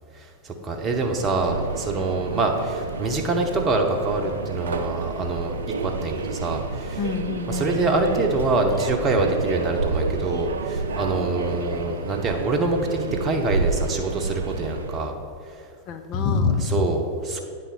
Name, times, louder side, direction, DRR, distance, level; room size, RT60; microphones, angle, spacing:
voice 1, 0.0-7.0 7.5-15.1 15.5-15.7 16.7-17.4, right 3 dB, 25° right, 3 dB, 0.9 m, -25 dB
Subway metro underground, 0.7-15.1, right 4 dB, 65° right, 0.4 m, -30 dB
voice 2, 7.0-8.0 15.9-16.8, left 4 dB, 40° left, 6 dB, 0.6 m, -26 dB
8.8 x 3.9 x 5.3 m, 2.3 s
figure-of-eight pair, 90°, 0 cm